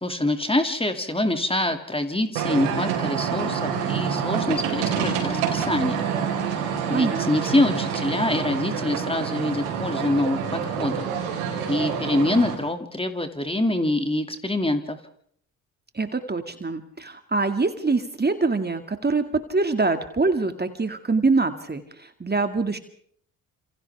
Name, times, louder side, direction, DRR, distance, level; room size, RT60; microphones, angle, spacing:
voice 1, 0.0-6.1 6.9-15.0, left 1 dB, 10° left, 7 dB, 2.4 m, -25 dB
sound 1, 2.3-12.5, right 7 dB, 80° right, 4.7 m, -27 dB
voice 2, 6.9-7.5 15.9-19.2 19.5-21.8 22.2-22.8, right 3 dB, 20° right, 7 dB, 2.2 m, -24 dB
30.0 x 27.5 x 3.5 m, 0.65 s
hypercardioid pair, 45°, 45 cm